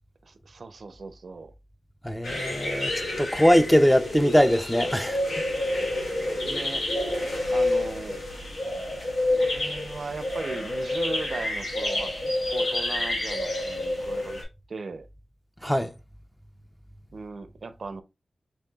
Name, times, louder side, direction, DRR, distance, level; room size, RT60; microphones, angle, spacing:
voice 1, 0.2-1.5 6.3-6.8 7.3-8.2 9.3-14.4 14.7-15.1 17.1-18.0, right 4 dB, 70° right, 0.4 m, -38 dB
voice 2, 2.0-5.2 15.6-15.9, equal, 5° left, 0.4 m, -21 dB
sound 1, 2.2-14.4, left 1 dB, 90° left, 1.4 m, -28 dB
5.4 x 2.9 x 2.3 m
cardioid pair, 60°, 0 cm